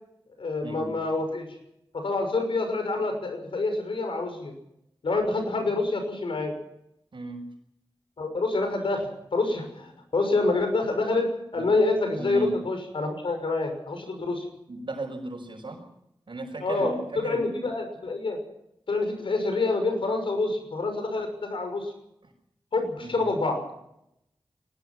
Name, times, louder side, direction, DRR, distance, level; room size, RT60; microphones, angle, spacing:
voice 1, 0.4-1.6 1.9-4.5 5.0-6.5 8.2-14.5 16.6-18.4 18.9-21.9 22.7-23.6, left 3 dB, 85° left, 6 dB, 6.2 m, -27 dB
voice 2, 7.1-7.5 11.6-11.7 12.2-12.6 14.7-15.9 16.3-17.6 23.0-23.3, right 2 dB, 70° right, -4 dB, 5.4 m, -36 dB
24.0 x 19.0 x 6.1 m, 0.80 s
cardioid pair, 55°, 9 cm